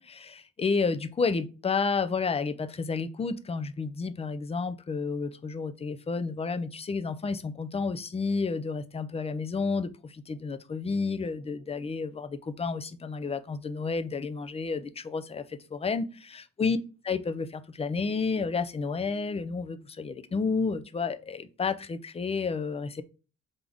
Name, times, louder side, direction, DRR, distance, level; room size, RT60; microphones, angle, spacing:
voice 1, 0.0-16.8 17.0-23.0, left 4 dB, 20° left, 0.4 m, -31 dB
3.8 x 3.6 x 3.4 m
cardioid pair, 90°, 30 cm